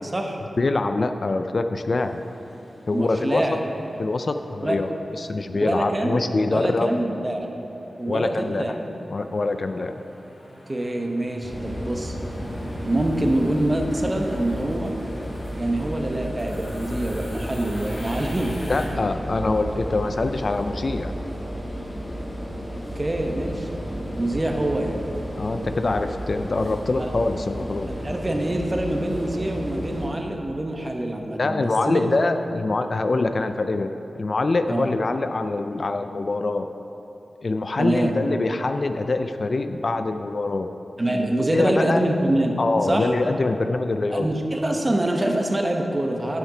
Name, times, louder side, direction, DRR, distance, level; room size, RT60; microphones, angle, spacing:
voice 1, 0.0-0.4 2.9-3.6 4.6-4.8 5.5-6.2 6.5-7.5 8.0-8.7 10.7-12.1 12.8-14.9 15.6-18.6 22.9-23.7 24.2-25.0 27.0-27.1 27.9-32.0 34.7-34.9 37.8-38.1 41.0-43.1 44.1-46.4, right 1 dB, 25° right, 2 dB, 0.8 m, -25 dB
voice 2, 0.6-2.2 2.9-3.6 4.0-7.0 8.1-8.8 9.1-9.9 18.7-21.1 25.3-27.9 31.4-36.7 37.4-40.7 41.2-42.1 42.6-44.3, left 3 dB, 50° left, 8 dB, 0.3 m, -24 dB
sound 1, 2.0-18.9, equal, 65° left, 2.2 m, -44 dB
sound 2, 11.4-30.1, equal, 25° left, 1.6 m, -33 dB
9.0 x 6.5 x 4.9 m, 3.0 s
wide cardioid pair, 110°, 0 cm